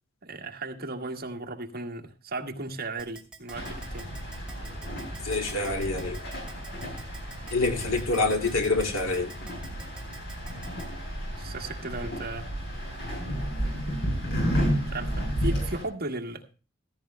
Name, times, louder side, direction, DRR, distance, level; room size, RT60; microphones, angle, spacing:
voice 1, 0.2-4.1 11.4-12.5 14.9-16.5, right 2 dB, 50° right, 1.7 m, -36 dB
Keyboard (musical), 3.0-10.9, right 3 dB, 5° right, 2.5 m, -46 dB
sound 1, 3.5-15.8, equal, 55° left, 7.6 m, -32 dB
voice 2, 5.2-6.2 7.5-9.3, left 3 dB, 90° left, 2.5 m, -26 dB
15.5 x 14.5 x 2.2 m
head